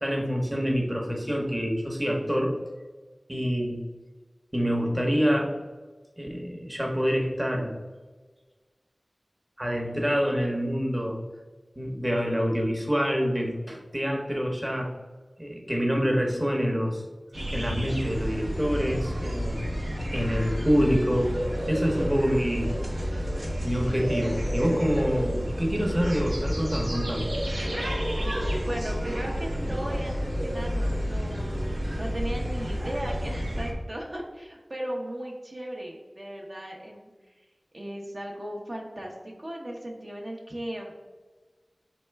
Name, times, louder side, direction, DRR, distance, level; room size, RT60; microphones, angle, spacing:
voice 1, 0.0-2.5 3.3-3.8 4.5-5.5 6.2-7.8 9.6-11.2 11.8-14.9 15.4-17.0 17.5-19.6 20.1-21.4 21.7-22.7 23.1-23.2 23.6-27.3, equal, 15° right, 0 dB, 0.8 m, -26 dB
sound 1, 17.3-33.7, equal, 85° right, 1.0 m, -30 dB
voice 2, 28.2-37.4 37.7-40.9, right 1 dB, 50° right, -2 dB, 0.7 m, -37 dB
4.2 x 3.2 x 3.3 m, 1.3 s
wide cardioid pair, 40°, 0 cm